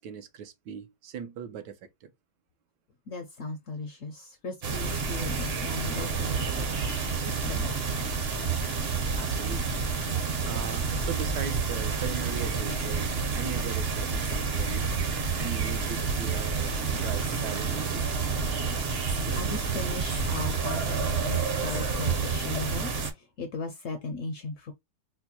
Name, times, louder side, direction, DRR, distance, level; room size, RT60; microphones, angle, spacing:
voice 1, 0.0-2.1 9.2-9.9 10.4-14.9 15.4-18.1, right 7 dB, 80° right, 1.3 m, -39 dB
voice 2, 3.1-6.9 7.3-8.1 18.5-18.7 19.3-24.7, left 3 dB, 70° left, 0.7 m, -37 dB
sound 1, 4.6-23.1, right 5 dB, 50° right, 0.8 m, -29 dB
4.3 x 2.2 x 2.8 m
omnidirectional pair, 1.8 m